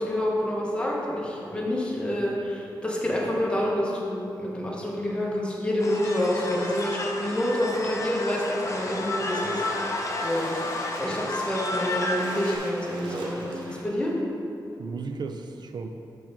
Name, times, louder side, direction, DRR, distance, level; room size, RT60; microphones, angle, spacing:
voice 1, 0.0-10.5 11.0-14.1, left 1 dB, 15° left, -4 dB, 1.1 m, -28 dB
sound 1, 5.8-12.6, left 2 dB, 45° left, 0.6 m, -31 dB
Splash splatter, 9.2-14.1, right 1 dB, 90° right, 1.0 m, -43 dB
voice 2, 13.0-13.4 14.8-15.9, right 4 dB, 70° right, 6 dB, 0.3 m, -35 dB
6.1 x 3.5 x 5.2 m, 2.8 s
wide cardioid pair, 100°, 8 cm